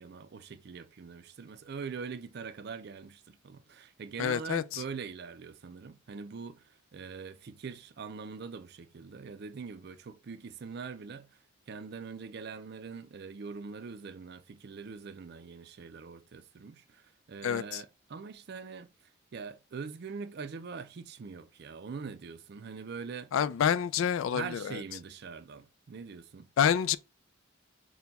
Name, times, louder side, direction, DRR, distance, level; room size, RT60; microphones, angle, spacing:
voice 1, 0.0-6.7 6.9-11.3 11.7-17.0 17.3-18.9 19.3-23.3 24.3-26.5, right 5 dB, 50° right, 0.4 m, -43 dB
voice 2, 4.2-4.8 17.4-17.8 23.3-24.8 26.6-27.0, left 8 dB, 70° left, 0.3 m, -28 dB
4.4 x 2.2 x 4.0 m
head